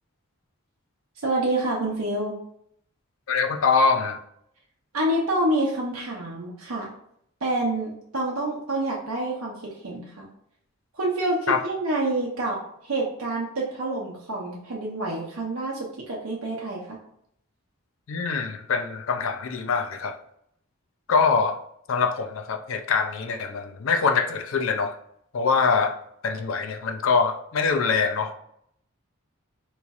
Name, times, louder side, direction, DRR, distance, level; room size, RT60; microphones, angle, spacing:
voice 1, 1.2-2.3 4.9-6.9 7.4-10.3 10.9-12.6 12.8-17.0, right 1 dB, 85° right, -3 dB, 0.7 m, -27 dB
voice 2, 3.3-4.2 11.5-11.6 18.1-20.2 21.1-21.6 21.9-24.9 25.3-25.9 26.2-28.3, left 5 dB, 65° left, 6 dB, 0.4 m, -24 dB
4.0 x 3.1 x 2.4 m, 0.70 s
head